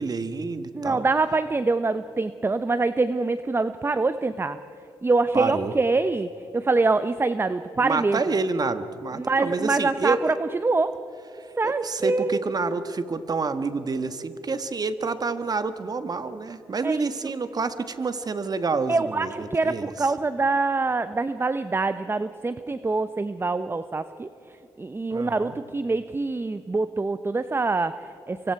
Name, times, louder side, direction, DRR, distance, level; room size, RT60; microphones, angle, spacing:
voice 1, 0.0-1.1 5.3-5.7 7.8-10.2 11.3-19.9 25.1-25.6, right 4 dB, 45° right, 10 dB, 1.5 m, -28 dB
voice 2, 0.7-4.6 5.0-8.2 9.2-10.9 11.6-12.4 16.8-17.3 18.9-24.3 24.8-28.5, right 3 dB, 25° right, 12 dB, 0.7 m, -25 dB
24.5 x 24.5 x 4.7 m, 3.0 s
supercardioid pair, 60°, 9 cm